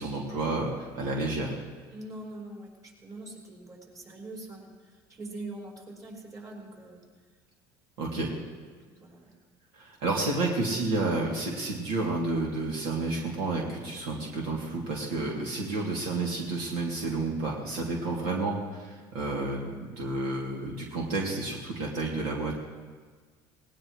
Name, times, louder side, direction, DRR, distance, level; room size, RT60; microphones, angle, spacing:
voice 1, 0.0-1.5 8.0-8.3 9.7-22.5, right 2 dB, 85° right, -2 dB, 2.8 m, -30 dB
voice 2, 1.9-7.0 8.1-9.4 18.1-18.4, right 2 dB, 35° right, -2 dB, 5.6 m, -44 dB
19.5 x 19.0 x 3.2 m, 1.5 s
supercardioid pair, 100°, 11 cm